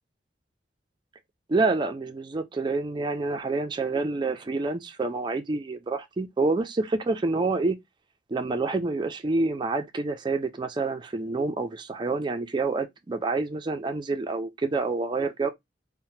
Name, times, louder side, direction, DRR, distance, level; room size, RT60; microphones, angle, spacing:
voice 1, 1.5-7.8 8.3-15.5, right 3 dB, 25° right, 0.4 m, -27 dB
3.1 x 2.0 x 2.7 m
head